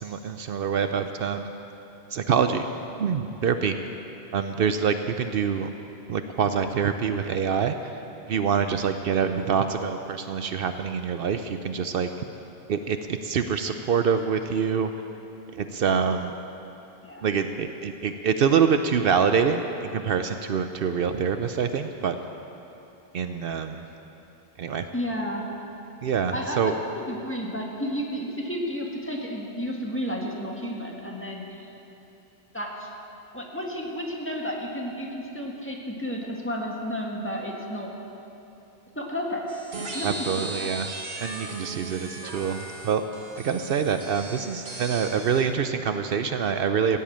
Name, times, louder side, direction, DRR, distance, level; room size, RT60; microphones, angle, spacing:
voice 1, 0.0-1.4 2.1-2.7 3.0-3.7 4.3-5.7 6.1-7.7 8.3-12.1 12.7-13.0 13.2-14.9 15.6-16.3 17.2-19.6 19.9-22.1 23.1-23.8 24.6-24.8 26.0-26.7 40.0-40.9 41.2-43.0 43.4-47.0, right 6 dB, 70° right, 8 dB, 0.8 m, -25 dB
voice 2, 24.9-25.4 26.3-31.7 32.5-32.9 33.3-37.9 38.9-39.4 39.8-40.7, equal, 10° left, -1 dB, 1.7 m, -32 dB
sound 1, 39.5-45.5, right 2 dB, 55° right, 1.6 m, -38 dB
15.5 x 8.4 x 8.6 m, 2.9 s
omnidirectional pair, 1.0 m